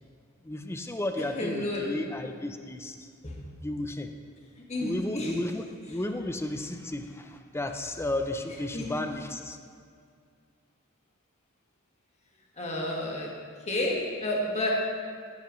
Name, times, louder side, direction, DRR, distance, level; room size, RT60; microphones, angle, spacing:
voice 1, 0.4-3.1 3.6-4.1 4.8-9.6, left 1 dB, 10° left, 6 dB, 0.6 m, -33 dB
voice 2, 1.4-1.9 3.2-3.4 4.7-5.3 8.7-8.9 12.6-13.3 13.7-14.7, left 1 dB, 35° left, -2 dB, 1.8 m, -30 dB
15.0 x 9.1 x 3.2 m, 2.2 s
head